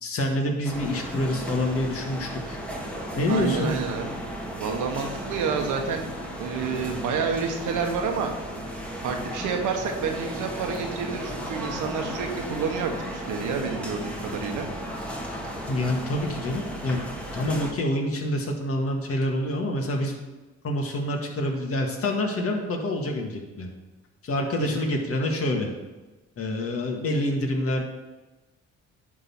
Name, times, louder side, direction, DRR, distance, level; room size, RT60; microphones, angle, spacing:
voice 1, 0.0-2.6 3.1-3.7 15.7-17.0 17.3-20.2 20.6-23.7 24.2-25.7 26.4-27.9, left 1 dB, 50° left, 1 dB, 1.8 m, -27 dB
sound 1, 0.6-17.7, equal, 5° left, 1.6 m, -35 dB
voice 2, 3.3-4.1 4.5-6.0 6.3-8.3 9.0-14.7 24.6-25.0, right 5 dB, 90° right, 3 dB, 1.3 m, -29 dB
11.0 x 3.8 x 6.0 m, 1.1 s
cardioid pair, 90°, 30 cm